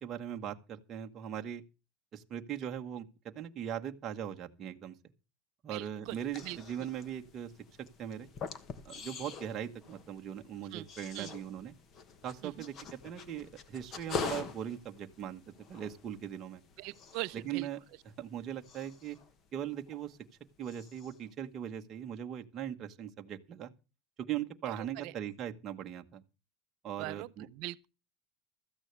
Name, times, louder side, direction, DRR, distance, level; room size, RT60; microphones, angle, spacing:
voice 1, 0.0-1.6 2.1-3.0 3.3-4.9 5.6-7.5 8.0-8.3 8.8-11.7 12.2-12.7 13.0-15.4 15.7-16.6 17.5-17.8 18.2-19.2 19.5-20.2 20.6-23.7 24.2-26.2 26.8-27.5, right 10 dB, 25° right, 1.2 m, -39 dB
voice 2, 5.7-6.9 10.7-10.9 11.1-11.3 12.4-12.7 16.8-17.7 24.7-25.1 27.0-27.9, right 20 dB, 45° right, 0.6 m, -42 dB
sound 1, 6.0-20.3 20.6-21.3, left 5 dB, 25° left, 1.1 m, -45 dB
16.5 x 14.0 x 3.3 m
cardioid pair, 180°, 0 cm